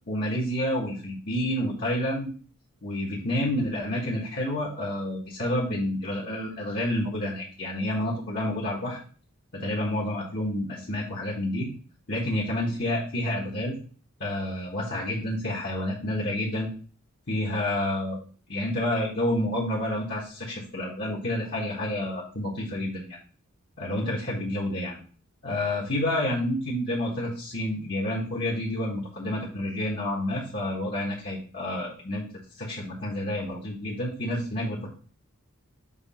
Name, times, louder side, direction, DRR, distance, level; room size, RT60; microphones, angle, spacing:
voice 1, 0.1-2.3 2.8-9.0 9.5-11.7 12.1-13.8 14.2-16.7 17.3-18.2 18.5-23.2 23.8-25.0 25.4-32.2 32.6-34.9, left 1 dB, 45° left, -4 dB, 1.4 m, -29 dB
6.9 x 3.3 x 5.5 m, 0.41 s
head